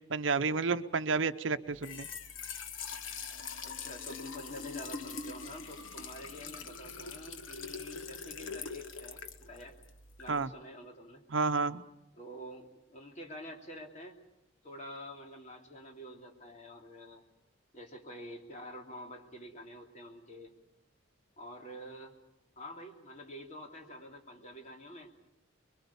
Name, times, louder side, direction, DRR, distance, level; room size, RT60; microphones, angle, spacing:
voice 1, 0.1-2.1 10.3-10.5 11.3-11.8, right 4 dB, 70° right, 10 dB, 0.8 m, -30 dB
Trickle dribble / Fill (with liquid), 1.7-10.5, left 5 dB, 85° left, 1.3 m, -43 dB
voice 2, 3.6-9.8 10.2-11.2 12.1-14.2 14.6-17.2 17.7-20.5 21.4-22.2 22.6-25.2, equal, 40° left, 2 dB, 3.0 m, -48 dB
25.5 x 22.5 x 7.1 m, 0.86 s
head